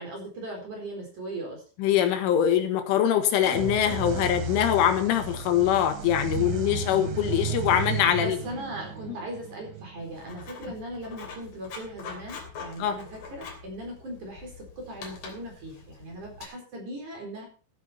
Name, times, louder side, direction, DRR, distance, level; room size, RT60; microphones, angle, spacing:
voice 1, 0.0-1.6 8.1-17.5, right 1 dB, 40° right, 2 dB, 5.4 m, -39 dB
voice 2, 1.8-8.4 9.1-9.2 12.8-13.0, left 10 dB, 85° left, 7 dB, 4.0 m, -23 dB
sound 1, 3.4-11.0, right 5 dB, 80° right, 4.9 m, -34 dB
Writing, 10.0-16.5, left 5 dB, 50° left, 4.4 m, -44 dB
15.5 x 10.5 x 4.3 m, 0.36 s
omnidirectional pair, 5.5 m